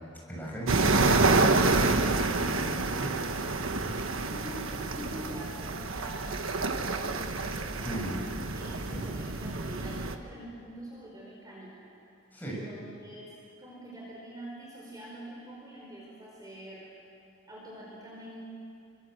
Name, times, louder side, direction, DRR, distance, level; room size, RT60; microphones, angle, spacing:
voice 1, 0.3-3.5 3.8-3.9 7.8-8.2 8.9-9.1 12.3-12.6, right 1 dB, 10° left, -4 dB, 7.1 m, -38 dB
sound 1, 0.7-10.2, right 3 dB, 70° right, 1.4 m, -28 dB
voice 2, 4.0-8.2 8.6-12.1 12.4-13.3 13.6-16.9 17.5-18.4, right 1 dB, 20° right, -4 dB, 4.8 m, -45 dB
29.0 x 24.0 x 8.1 m, 2.5 s
head